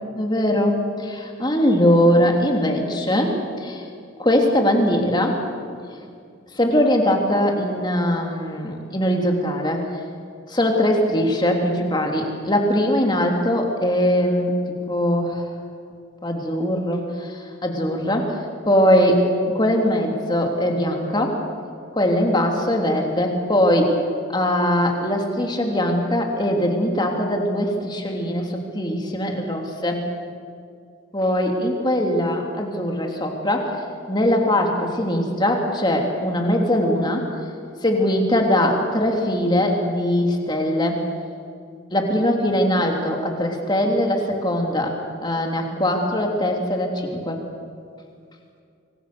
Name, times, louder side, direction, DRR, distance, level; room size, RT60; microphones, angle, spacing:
voice 1, 0.1-3.8 4.2-5.4 6.6-9.8 10.5-14.5 14.9-15.5 16.2-18.4 18.6-21.4 21.9-24.0 24.3-30.0 31.1-33.8 34.1-37.3 37.8-41.0 41.9-47.4, left 1 dB, 20° left, 1 dB, 3.2 m, -21 dB
25.5 x 24.5 x 7.0 m, 2.3 s
head